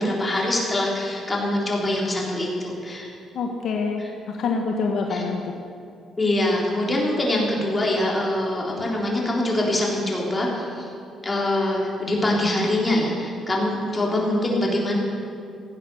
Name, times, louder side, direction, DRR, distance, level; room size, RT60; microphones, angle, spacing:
voice 1, 0.0-3.1 5.1-5.2 6.2-10.9 11.2-15.0, left 1 dB, 20° left, -3 dB, 3.5 m, -24 dB
voice 2, 3.3-5.5, left 4 dB, 70° left, 2 dB, 1.3 m, -26 dB
16.0 x 9.0 x 6.9 m, 2.5 s
cardioid pair, 90°, 0 cm